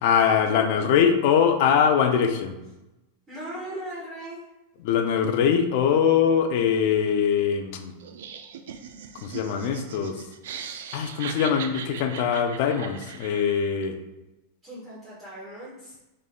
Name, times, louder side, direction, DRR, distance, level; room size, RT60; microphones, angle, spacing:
voice 1, 0.0-2.6 4.8-7.9 9.2-10.1 10.9-14.0, left 7 dB, 55° left, 7 dB, 0.4 m, -22 dB
voice 2, 3.3-4.4 14.6-15.9, right 1 dB, 20° right, -10 dB, 1.1 m, -38 dB
Laughter, 8.0-13.8, right 7 dB, 80° right, 0.3 m, -39 dB
3.8 x 3.5 x 2.2 m, 0.99 s
supercardioid pair, 150°, 0 cm